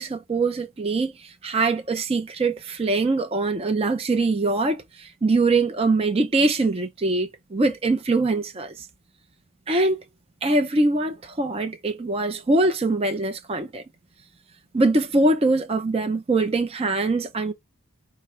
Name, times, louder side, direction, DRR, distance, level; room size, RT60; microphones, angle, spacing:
voice 1, 0.0-8.9 9.7-10.0 10.4-13.8 14.7-17.5, right 2 dB, 25° right, 0.4 m, -23 dB
4.8 x 2.0 x 4.3 m
head